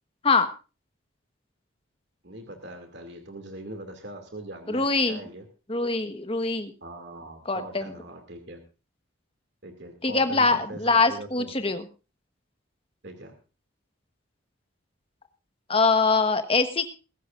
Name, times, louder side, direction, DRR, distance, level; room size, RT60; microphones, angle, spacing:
voice 1, 2.2-5.5 6.8-8.6 9.6-11.5 13.0-13.3, right 1 dB, 55° right, 5 dB, 2.5 m, -41 dB
voice 2, 4.7-5.2 5.7-6.7 7.4-7.9 10.0-11.8 15.7-16.9, left 3 dB, 25° left, 9 dB, 1.3 m, -23 dB
22.0 x 13.0 x 2.5 m, 0.32 s
head